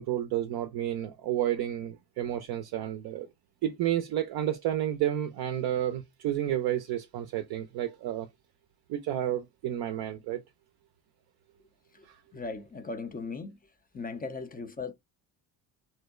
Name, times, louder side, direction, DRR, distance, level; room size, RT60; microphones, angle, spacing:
voice 1, 0.0-3.3 3.6-8.3 8.9-10.4 12.0-12.2, right 12 dB, 50° right, 0.5 m, -31 dB
voice 2, 12.3-13.6 13.9-14.9, left 4 dB, 20° left, 0.4 m, -38 dB
2.6 x 2.1 x 2.3 m
hypercardioid pair, 50°, 50 cm